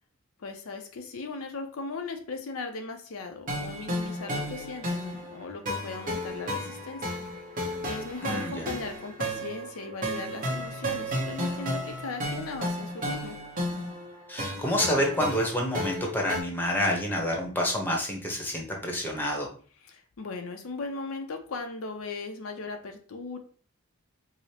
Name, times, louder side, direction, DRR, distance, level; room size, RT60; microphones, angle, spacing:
voice 1, 0.4-7.2 7.8-13.4 19.8-23.4, left 3 dB, 80° left, 4 dB, 0.5 m, -38 dB
sound 1, 3.5-16.4, equal, 40° right, 0.9 m, -33 dB
voice 2, 8.2-8.6 14.3-19.5, equal, 10° left, 0 dB, 0.8 m, -28 dB
4.8 x 2.0 x 2.8 m, 0.41 s
head